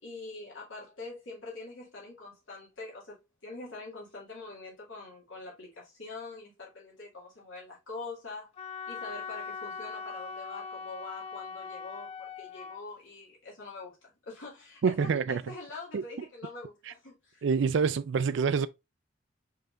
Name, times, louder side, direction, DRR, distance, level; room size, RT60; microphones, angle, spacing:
voice 1, 0.0-8.5 8.9-17.4, left 3 dB, 80° left, 2.4 m, -44 dB
Wind instrument woodwind instrument, 8.6-12.8, left 5 dB, 30° left, 0.4 m, -40 dB
voice 2, 14.8-15.4 15.9-16.0 17.4-18.7, right 5 dB, 65° right, 0.4 m, -26 dB
5.6 x 3.5 x 2.5 m
head